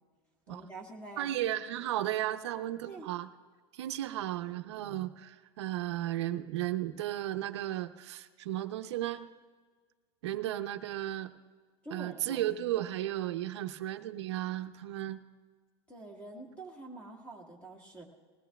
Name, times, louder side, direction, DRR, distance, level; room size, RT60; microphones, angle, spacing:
voice 1, 0.5-1.3 2.8-3.1 11.8-12.4 15.9-18.0, right 2 dB, 10° left, 1 dB, 1.6 m, -46 dB
voice 2, 1.2-3.3 3.7-9.3 10.2-11.3 11.9-15.2, right 13 dB, 85° right, 7 dB, 0.7 m, -34 dB
20.0 x 17.5 x 2.3 m, 1.5 s
supercardioid pair, 165°, 14 cm